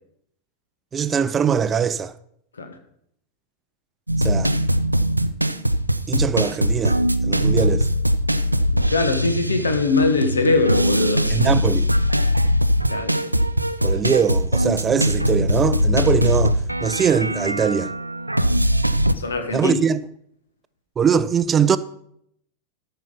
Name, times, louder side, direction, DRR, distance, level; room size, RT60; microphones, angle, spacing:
voice 1, 0.9-2.1 4.2-4.5 6.1-7.0 7.2-7.9 11.3-11.9 13.8-17.9 19.5-20.0 21.0-21.8, right 7 dB, 20° right, 0.5 m, -21 dB
sound 1, 4.1-19.1, equal, 85° right, 0.5 m, -21 dB
voice 2, 8.7-11.5 12.9-13.2 19.1-19.7, left 3 dB, 70° left, 1.5 m, -22 dB
14.0 x 5.7 x 5.6 m
figure-of-eight pair, 90°, 0 cm